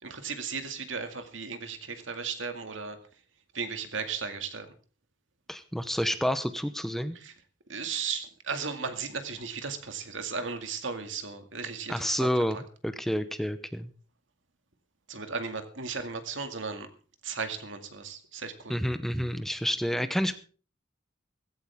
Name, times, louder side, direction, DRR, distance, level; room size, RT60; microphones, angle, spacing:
voice 1, 0.0-3.0 3.5-4.7 7.1-7.3 7.7-12.3 15.1-16.9 17.2-18.8, right 5 dB, 80° right, 7 dB, 2.2 m, -35 dB
voice 2, 5.5-7.1 11.9-12.6 12.8-13.9 18.7-20.3, equal, ahead, 10 dB, 0.8 m, -29 dB
16.0 x 15.5 x 3.6 m, 0.39 s
head